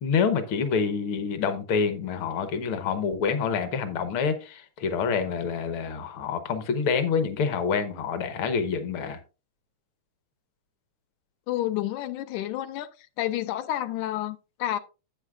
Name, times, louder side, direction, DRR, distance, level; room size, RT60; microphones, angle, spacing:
voice 1, 0.0-9.2, left 6 dB, 60° left, 1.5 m, -27 dB
voice 2, 11.5-12.9 13.2-14.8, left 13 dB, 85° left, 2.1 m, -30 dB
11.5 x 8.3 x 2.4 m
omnidirectional pair, 3.5 m